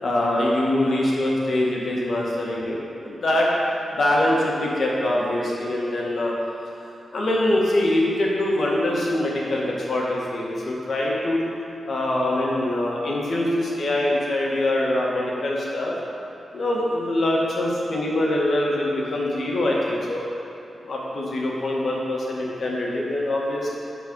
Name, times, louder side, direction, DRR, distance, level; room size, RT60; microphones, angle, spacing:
voice 1, 0.0-3.5 3.9-6.3 7.1-11.4 11.8-15.9 16.5-20.2 20.8-23.7, left 1 dB, 60° left, -4 dB, 1.6 m, -23 dB
10.0 x 4.2 x 5.4 m, 3.0 s
cardioid pair, 80°, 0 cm